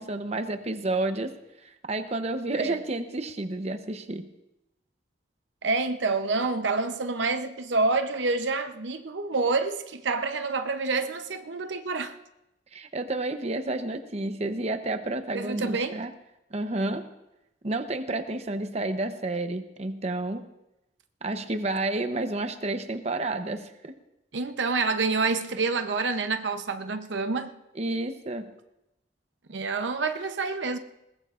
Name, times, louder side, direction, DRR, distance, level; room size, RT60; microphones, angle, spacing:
voice 1, 0.0-1.3 1.6-4.3 12.7-16.1 16.5-17.1 17.6-20.5 21.2-23.9 27.7-28.5, right 2 dB, 35° right, 0.9 m, -30 dB
voice 2, 5.6-12.2 15.3-16.0 24.3-27.5 29.5-30.8, right 3 dB, 80° right, 0.8 m, -27 dB
21.0 x 19.5 x 2.5 m
head